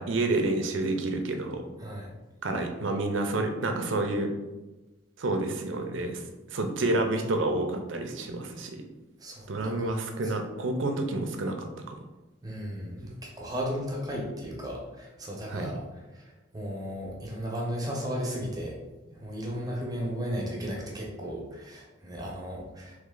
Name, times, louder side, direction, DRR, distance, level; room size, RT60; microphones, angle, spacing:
voice 1, 0.0-1.6 2.4-4.3 5.2-6.2 6.5-8.8 9.5-11.9 13.0-13.2 15.5-15.7, right 2 dB, 70° right, 5 dB, 0.6 m, -29 dB
voice 2, 1.8-2.1 9.2-9.9 10.2-10.3 12.4-15.8 16.1-16.3 16.5-18.7 19.1-23.0, equal, 20° right, -3 dB, 0.9 m, -35 dB
3.3 x 3.2 x 3.8 m, 1.1 s
head